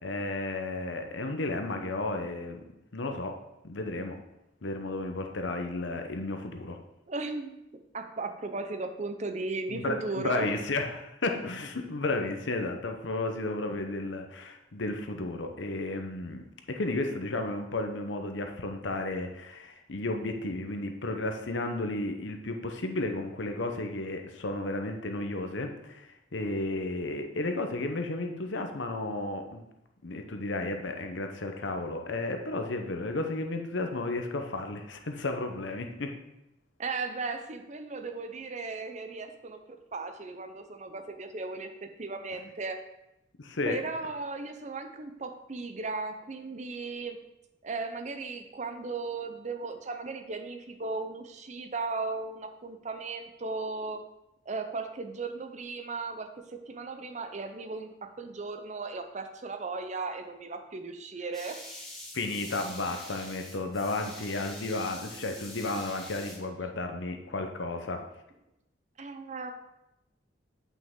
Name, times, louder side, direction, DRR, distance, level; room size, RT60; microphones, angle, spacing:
voice 1, 0.0-2.6 2.9-3.4 3.6-4.2 4.6-6.8 9.7-16.4 16.7-29.6 30.0-36.1 43.4-43.8 62.1-68.0, left 2 dB, 75° left, 5 dB, 0.9 m, -33 dB
voice 2, 7.1-7.6 7.9-10.5 36.8-42.8 43.7-47.2 47.6-54.0 54.5-61.6 69.0-69.5, right 3 dB, 40° right, 6 dB, 0.6 m, -36 dB
sound 1, 61.3-66.4, left 1 dB, ahead, 1.7 m, -45 dB
8.4 x 5.7 x 3.7 m, 0.89 s
head